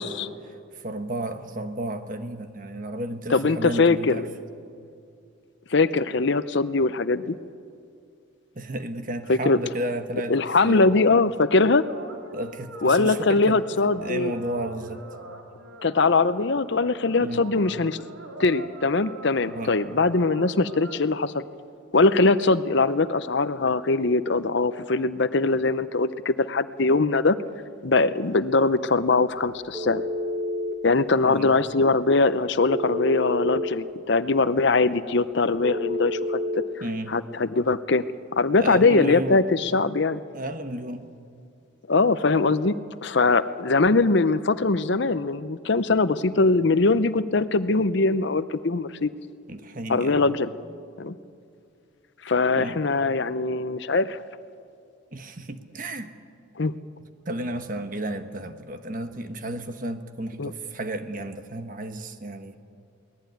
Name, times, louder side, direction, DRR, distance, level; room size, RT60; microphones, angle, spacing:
voice 1, 0.4-4.3 8.5-10.9 12.3-15.0 17.2-17.5 19.5-19.7 31.2-31.5 36.8-37.1 38.6-39.4 40.3-41.1 49.5-50.3 52.6-52.8 55.1-56.1 57.2-62.6, right 1 dB, 40° right, 8 dB, 1.3 m, -33 dB
voice 2, 3.3-4.2 5.7-7.4 9.3-9.6 10.3-11.9 12.8-14.3 15.8-18.0 18.4-21.4 21.9-27.4 27.8-30.0 30.8-36.4 37.1-38.0 38.4-40.2 41.9-42.8 43.0-49.1 49.9-50.5 51.0-51.1 52.2-54.2 56.6-56.8 60.4-60.5, left 3 dB, 55° left, 13 dB, 0.7 m, -22 dB
sound 1, 11.8-21.0, right 1 dB, 75° right, 3.5 m, -43 dB
Telephone, 29.7-30.8 32.7-33.7 35.6-36.7, left 1 dB, 5° right, 1.5 m, -29 dB
23.0 x 19.0 x 9.3 m, 2.4 s
head